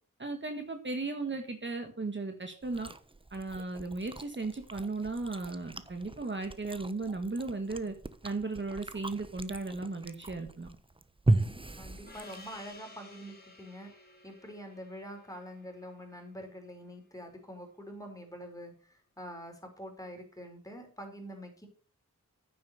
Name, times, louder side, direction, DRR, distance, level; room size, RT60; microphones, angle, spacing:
voice 1, 0.2-2.9 3.3-7.9 8.2-10.7, right 3 dB, 35° right, 5 dB, 1.8 m, -36 dB
Chewing mastication, 2.6-12.8, right 2 dB, 15° right, 1.0 m, -37 dB
voice 2, 11.8-13.9 14.2-21.7, equal, 10° left, 2 dB, 4.9 m, -45 dB
Gong, 12.1-17.1, left 2 dB, 30° left, 3.9 m, -55 dB
9.5 x 7.6 x 6.6 m, 0.41 s
cardioid pair, 65°, 32 cm